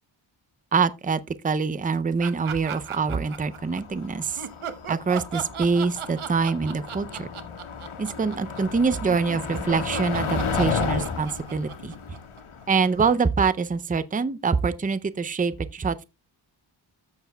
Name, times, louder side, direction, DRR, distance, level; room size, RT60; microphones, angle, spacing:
voice 1, 0.7-4.4 4.9-7.3 8.0-11.9 12.7-16.0, right 5 dB, 20° right, 0.5 m, -25 dB
sound 1, 2.2-3.8 4.4-12.6, right 8 dB, 80° right, 1.0 m, -36 dB
Motor vehicle (road), 2.8-13.1, left 5 dB, 90° left, 1.5 m, -33 dB
13.5 x 6.9 x 2.2 m
wide cardioid pair, 80°, 48 cm